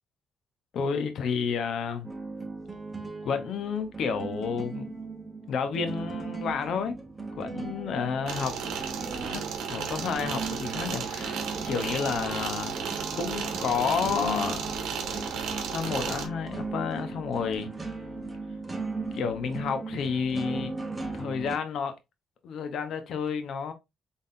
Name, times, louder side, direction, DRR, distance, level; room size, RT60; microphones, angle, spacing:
voice 1, 0.7-2.1 3.2-5.0 5.5-7.0 7.4-8.6 9.3-12.7 13.1-14.6 15.7-17.7 19.1-20.7 21.1-21.9 22.4-23.7, left 6 dB, 70° left, 0.8 m, -30 dB
sound 1, 2.0-21.6, right 3 dB, 20° right, 0.9 m, -38 dB
sound 2, 8.3-16.3, right 6 dB, 85° right, 0.9 m, -34 dB
3.8 x 3.5 x 2.6 m
cardioid pair, 90°, 0 cm